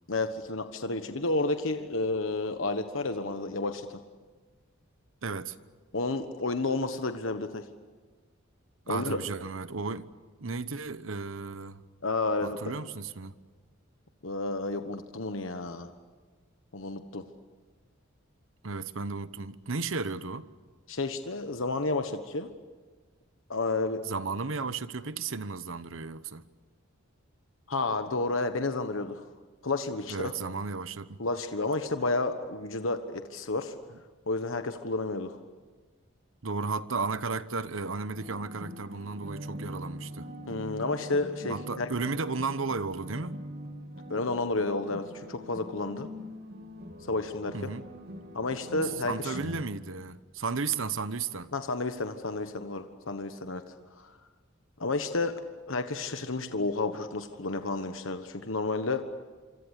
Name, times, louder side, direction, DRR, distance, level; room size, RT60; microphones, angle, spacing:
voice 1, 0.1-4.0 5.9-7.7 8.9-9.2 12.0-12.8 14.2-15.9 16.7-17.2 20.9-22.5 23.5-24.0 27.7-29.2 29.6-30.3 31.2-33.7 34.3-35.4 40.5-41.9 44.1-46.1 47.1-47.7 48.3-49.4 51.5-53.6 54.0-54.2 54.8-55.4 55.7-59.1, left 3 dB, 75° left, 1.3 m, -31 dB
voice 2, 5.2-5.6 8.9-10.1 10.4-11.8 12.4-13.4 18.6-20.5 24.0-26.4 30.1-31.2 36.4-40.3 41.5-43.4 47.5-47.8 49.0-51.5, right 4 dB, 75° right, 1.1 m, -34 dB
sound 1, 38.2-49.6, equal, 50° right, 2.9 m, -43 dB
26.0 x 26.0 x 8.3 m
head